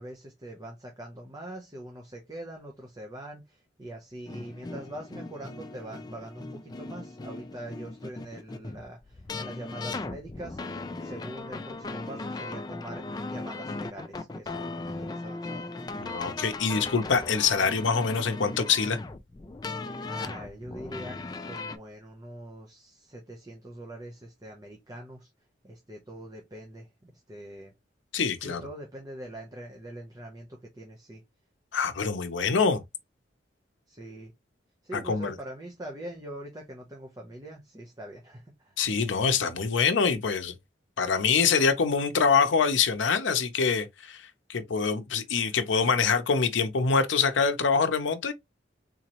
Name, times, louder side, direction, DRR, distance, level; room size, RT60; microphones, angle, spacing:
voice 1, 0.0-10.6 11.0-15.8 20.1-25.3 25.6-27.7 28.4-31.2 33.9-34.3 34.8-38.8, right 1 dB, 20° right, 0.7 m, -43 dB
sound 1, 4.3-21.8, left 3 dB, 20° left, 0.4 m, -38 dB
voice 2, 16.0-19.0 28.1-28.6 31.7-32.8 34.9-35.3 38.8-40.5 41.0-44.2 44.5-48.3, left 5 dB, 80° left, 0.6 m, -25 dB
3.8 x 3.0 x 2.9 m
head